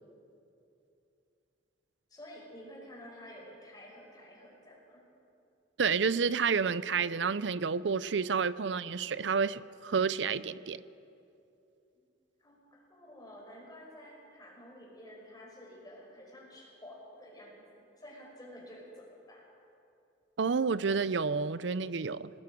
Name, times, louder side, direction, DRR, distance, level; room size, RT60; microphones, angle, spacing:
voice 1, 2.1-5.0 11.9-12.0 12.4-17.6 18.0-19.5, equal, 20° left, -2 dB, 4.9 m, -51 dB
voice 2, 5.8-10.8 20.4-22.3, right 5 dB, 80° right, 17 dB, 0.6 m, -30 dB
25.5 x 19.5 x 5.3 m, 2.7 s
head